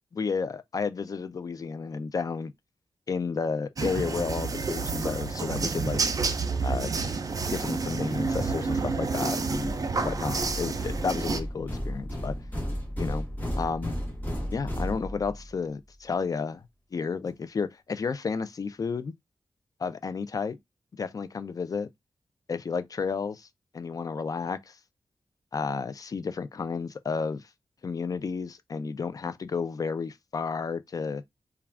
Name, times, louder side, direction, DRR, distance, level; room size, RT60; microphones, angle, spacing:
voice 1, 0.1-2.5 3.1-6.0 6.6-7.0 7.5-12.4 13.0-13.3 13.5-13.9 14.5-16.6 16.9-19.1 19.8-20.6 21.0-21.9 22.5-23.5 23.7-24.8 25.5-27.4 27.8-31.2, left 5 dB, 45° left, 0.3 m, -32 dB
sound 1, 3.8-11.4, right 4 dB, 40° right, 0.4 m, -29 dB
sound 2, 9.5-15.5, equal, 20° left, 1.1 m, -34 dB
2.4 x 2.3 x 3.3 m
wide cardioid pair, 110°, 9 cm